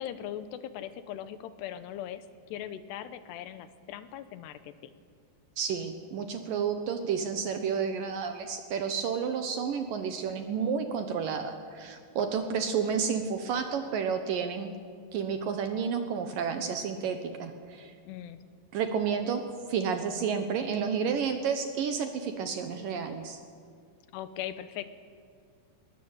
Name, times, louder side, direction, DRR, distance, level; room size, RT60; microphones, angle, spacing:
voice 1, 0.0-4.9 18.1-18.4 24.1-24.9, left 11 dB, 80° left, 13 dB, 2.9 m, -40 dB
voice 2, 5.6-14.7 15.1-17.9 18.7-19.4 19.7-23.4, right 6 dB, 65° right, 7 dB, 2.3 m, -31 dB
20.5 x 20.5 x 8.9 m, 2.2 s
omnidirectional pair, 5.0 m